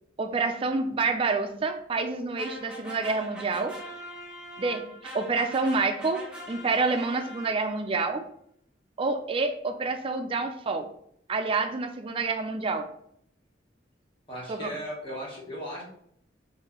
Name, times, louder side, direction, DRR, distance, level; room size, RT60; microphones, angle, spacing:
voice 1, 0.2-3.8 4.6-8.2 9.0-10.9 11.3-12.9 14.5-14.7, right 3 dB, 30° right, 7 dB, 0.3 m, -28 dB
sound 1, 2.4-7.9, equal, 5° right, 0.7 m, -42 dB
voice 2, 14.3-15.8, equal, 30° left, -5 dB, 1.2 m, -37 dB
3.1 x 2.6 x 3.6 m, 0.68 s
head